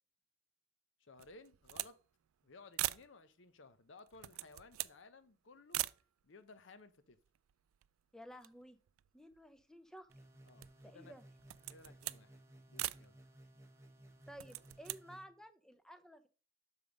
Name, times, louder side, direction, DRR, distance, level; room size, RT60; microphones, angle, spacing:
voice 1, 1.0-2.0 2.4-5.8 6.2-7.2 10.5-11.1 11.7-12.4 12.7-13.1, left 3 dB, 65° left, 12 dB, 0.7 m, -58 dB
sound 1, 1.2-2.0 2.3-2.4 2.7-3.1 4.0-5.0 5.7-6.0 6.8-6.9 7.1-8.0 8.3-9.6 10.1-10.9 11.4-12.2 12.8-13.1 14.2-15.0, right 17 dB, 85° right, 0.3 m, -42 dB
voice 2, 8.1-8.8 9.1-10.1 10.8-11.2 14.3-16.3, equal, 5° left, 10 dB, 0.6 m, -54 dB
sound 2, 10.1-15.2, right 1 dB, 15° right, 0.9 m, -59 dB
6.3 x 5.3 x 5.1 m, 0.36 s
head